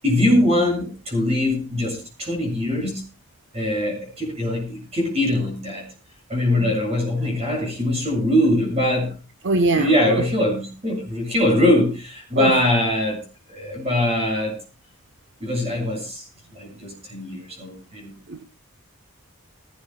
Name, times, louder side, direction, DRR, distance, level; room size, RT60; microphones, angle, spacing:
voice 1, 0.0-3.0 3.5-5.8 6.3-9.2 9.7-13.2 13.5-14.6 15.4-16.3 16.5-18.1, left 1 dB, 30° right, 7.7 m, -22 dB
voice 2, 9.4-10.3 12.4-12.6 18.3-18.4, right 2 dB, 55° right, 0.9 m, -23 dB
19.5 x 17.5 x 2.2 m
head